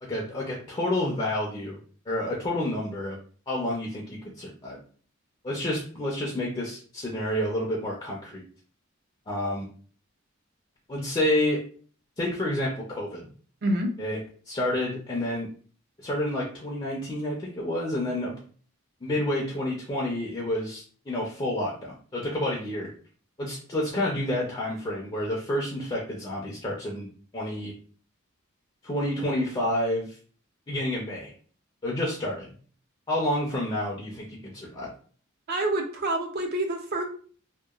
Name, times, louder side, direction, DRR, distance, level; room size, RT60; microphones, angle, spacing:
voice 1, 0.0-1.8 2.1-3.2 3.5-4.8 5.4-8.4 9.3-9.7 10.9-11.6 12.2-13.3 14.0-14.2 14.5-15.5 16.0-18.4 19.0-22.9 23.4-27.1 27.3-27.7 28.8-30.2 30.7-31.3 31.8-32.5 33.1-34.9, left 1 dB, 25° left, -3 dB, 0.5 m, -29 dB
voice 2, 13.6-13.9 35.5-37.0, right 1 dB, 50° right, 4 dB, 0.5 m, -27 dB
2.8 x 2.2 x 2.3 m, 0.43 s
head